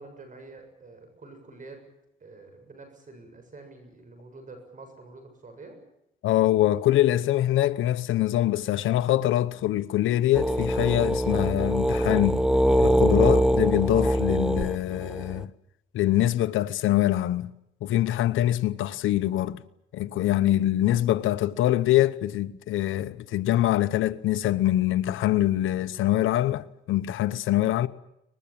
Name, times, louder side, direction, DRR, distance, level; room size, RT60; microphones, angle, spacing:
voice 1, 0.0-1.8 2.2-5.8, right 3 dB, 40° right, 7.4 m, -47 dB
voice 2, 6.2-12.4 12.8-15.5 15.9-17.5 17.8-19.6 19.9-27.9, left 13 dB, 80° left, 0.9 m, -24 dB
sound 1, 10.4-15.4, equal, 5° right, 0.9 m, -23 dB
24.0 x 20.0 x 8.8 m
cardioid pair, 90°, 20 cm